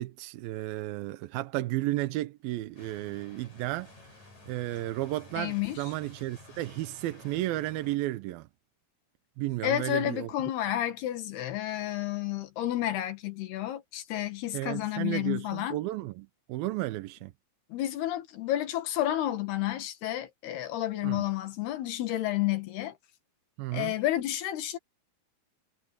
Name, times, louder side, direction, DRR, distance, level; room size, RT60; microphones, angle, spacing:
voice 1, 0.0-4.0 4.5-8.5 9.4-10.3 14.5-17.3 21.0-21.3 23.6-23.9, right 17 dB, 80° right, 2.5 m, -33 dB
sound 1, 2.8-8.0, left 2 dB, 50° left, 9.4 m, -52 dB
voice 2, 5.4-5.8 9.6-15.8 17.7-22.9 23.7-24.8, left 13 dB, 90° left, 3.8 m, -31 dB
omnidirectional pair, 4.5 m